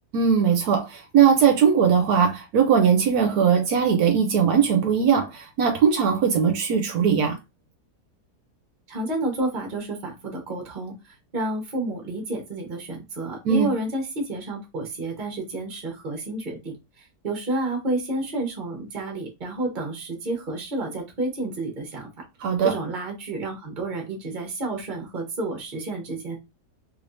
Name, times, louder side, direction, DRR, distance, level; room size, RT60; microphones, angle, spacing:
voice 1, 0.1-7.4 13.4-13.7 22.4-22.7, right 7 dB, 75° right, 1.1 m, -20 dB
voice 2, 8.9-10.9 11.3-16.7 17.2-22.1 22.6-26.4, right 2 dB, 35° right, 1.0 m, -30 dB
3.3 x 3.0 x 2.6 m
omnidirectional pair, 1.7 m